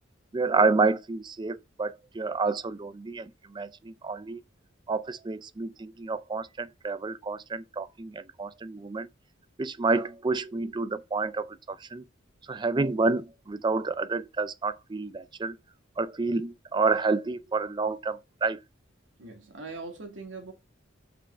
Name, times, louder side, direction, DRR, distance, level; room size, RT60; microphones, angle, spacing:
voice 1, 0.3-4.4 4.9-9.1 9.6-12.0 12.5-15.6 16.0-18.6, right 3 dB, 25° right, 0.4 m, -29 dB
voice 2, 19.2-20.5, right 3 dB, 70° right, 2.1 m, -41 dB
5.6 x 5.0 x 4.2 m
head